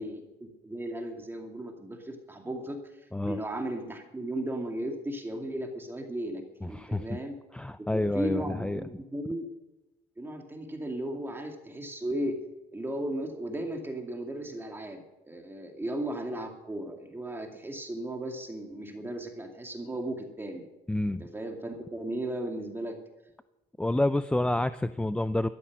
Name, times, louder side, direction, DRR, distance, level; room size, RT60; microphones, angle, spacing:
voice 1, 0.0-2.8 3.2-7.3 7.8-9.4 10.2-12.4 12.7-20.7 21.2-23.0, right 1 dB, 15° right, 2 dB, 2.4 m, -36 dB
voice 2, 6.6-7.2 7.5-8.8 20.9-21.2 23.8-25.5, left 1 dB, 5° left, 13 dB, 0.4 m, -28 dB
13.5 x 13.0 x 6.1 m, 1.0 s
cardioid pair, 110°, 17 cm